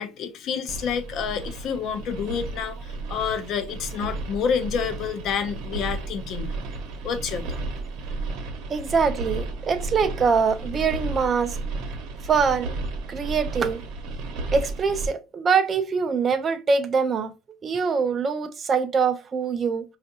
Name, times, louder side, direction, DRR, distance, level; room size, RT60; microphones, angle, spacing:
voice 1, 0.0-6.6 7.0-7.6, left 7 dB, 45° left, 0.5 m, -29 dB
sound 1, 0.7-15.1, right 3 dB, 65° right, 0.8 m, -33 dB
voice 2, 8.7-11.6 12.2-12.8 13.1-13.8 14.5-17.3 17.6-19.8, right 5 dB, 25° right, 0.4 m, -23 dB
4.5 x 2.4 x 2.6 m
cardioid pair, 170°, 0 cm